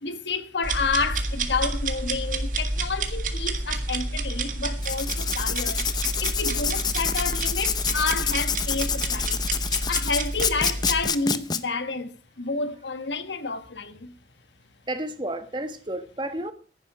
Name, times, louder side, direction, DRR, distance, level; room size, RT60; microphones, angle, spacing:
voice 1, 0.0-5.9 6.2-9.4 9.9-14.1, left 4 dB, 80° left, 1.4 m, -30 dB
sound 1, 0.6-11.0, right 2 dB, 45° right, 1.8 m, -29 dB
Writing, 4.8-11.6, left 7 dB, 25° left, 0.7 m, -27 dB
voice 2, 14.9-16.5, right 1 dB, 25° right, 1.4 m, -31 dB
15.5 x 11.0 x 4.8 m
head